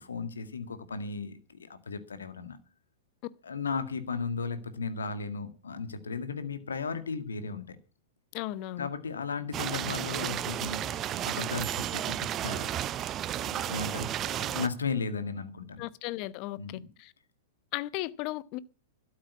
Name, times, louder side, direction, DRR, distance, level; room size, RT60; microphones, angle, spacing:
voice 1, 0.0-2.6 3.4-7.8 8.8-12.7 13.3-15.9 16.6-16.9, left 4 dB, 75° left, 1.9 m, -35 dB
voice 2, 8.3-8.9 15.8-16.6 17.0-17.1 17.7-18.6, left 17 dB, 45° left, 0.9 m, -35 dB
sound 1, 9.5-14.7, right 11 dB, 30° right, 0.6 m, -33 dB
12.5 x 8.8 x 8.5 m
figure-of-eight pair, 100°, 0 cm